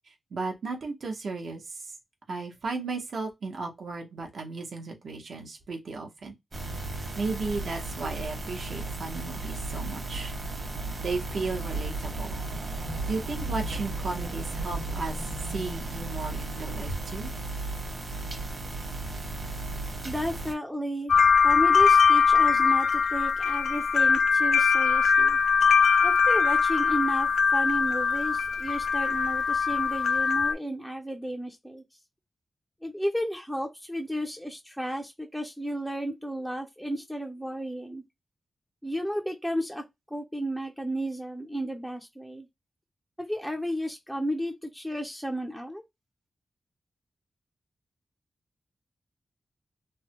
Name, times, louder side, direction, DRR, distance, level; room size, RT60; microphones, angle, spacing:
voice 1, 0.1-1.9 2.3-6.3 7.2-10.3 11.0-12.3 13.1-15.2 15.5-17.3, right 3 dB, 65° right, 1.0 m, -35 dB
sound 1, 6.5-20.5, right 2 dB, 40° right, 1.3 m, -34 dB
voice 2, 20.0-21.1 21.4-25.4 26.0-31.8 32.8-38.0 38.8-39.8 40.1-42.5 43.2-45.8, equal, ahead, 0.5 m, -33 dB
sound 2, 21.1-30.5, left 6 dB, 80° left, 0.4 m, -22 dB
3.3 x 2.2 x 2.9 m
wide cardioid pair, 150°, 0 cm